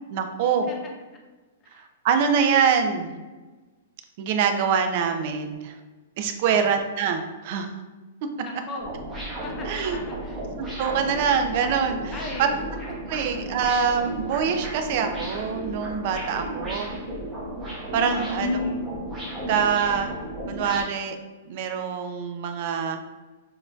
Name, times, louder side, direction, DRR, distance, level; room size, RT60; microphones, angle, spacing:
voice 1, 0.1-0.7 1.7-3.1 4.2-5.7 6.2-7.7 9.7-10.0 10.8-12.5 13.1-16.9 17.9-18.6 19.5-20.1 20.5-21.2 21.5-23.0, right 6 dB, 35° right, 6 dB, 0.4 m, -24 dB
voice 2, 8.4-8.9 9.4-10.5 12.1-12.6 18.1-18.9, left 2 dB, 15° left, 0 dB, 0.6 m, -33 dB
sound 1, 8.8-20.8, right 1 dB, 5° right, 0.9 m, -34 dB
6.3 x 2.6 x 2.3 m, 1.2 s
hypercardioid pair, 170°, 0 cm